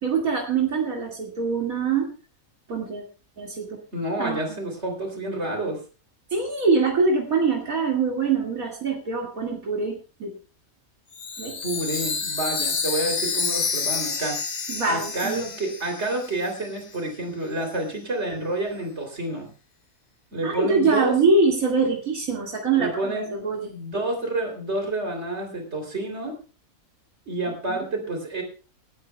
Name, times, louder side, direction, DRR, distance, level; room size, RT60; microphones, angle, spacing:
voice 1, 0.0-2.1 2.7-3.0 3.4-3.8 4.2-4.4 6.3-10.4 11.4-11.6 14.7-15.5 20.4-23.7 27.7-27.8, right 4 dB, 80° right, -1 dB, 2.8 m, -24 dB
voice 2, 3.9-5.8 11.6-14.4 14.8-19.5 20.3-21.1 22.8-23.3 23.7-26.3 27.3-28.4, right 2 dB, 50° right, 2 dB, 3.7 m, -29 dB
Chime, 11.1-16.7, left 5 dB, 35° left, 0.9 m, -29 dB
28.0 x 9.5 x 2.3 m, 0.33 s
omnidirectional pair, 1.4 m